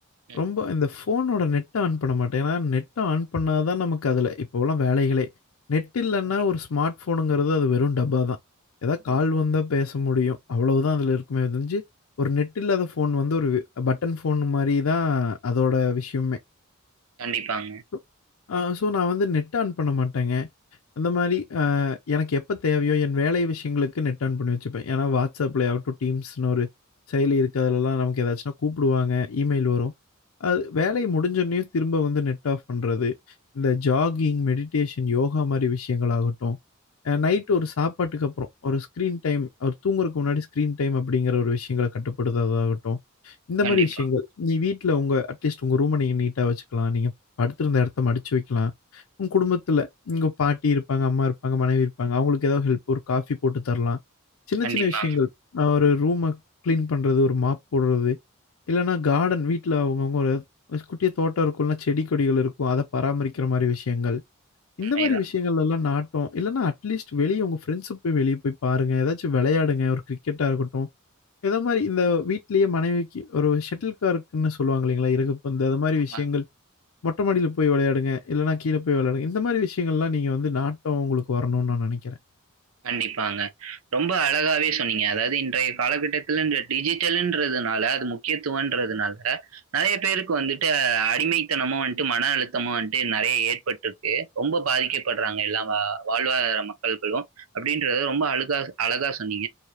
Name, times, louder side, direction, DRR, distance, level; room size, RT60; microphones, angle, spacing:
voice 1, 0.3-5.3 5.7-8.4 8.8-11.8 12.2-16.4 18.5-20.5 21.0-26.7 27.1-29.9 30.4-33.1 33.6-36.6 37.0-43.0 43.2-47.1 47.4-54.0 54.5-58.2 58.7-60.4 60.7-64.2 64.8-70.9 71.4-76.5 77.0-82.2, left 4 dB, 70° left, 0.5 m, -24 dB
voice 2, 17.2-17.8 43.6-43.9 54.6-55.2 64.8-65.2 76.1-76.2 82.8-99.5, right 6 dB, 75° right, 0.7 m, -26 dB
4.7 x 2.7 x 2.9 m
head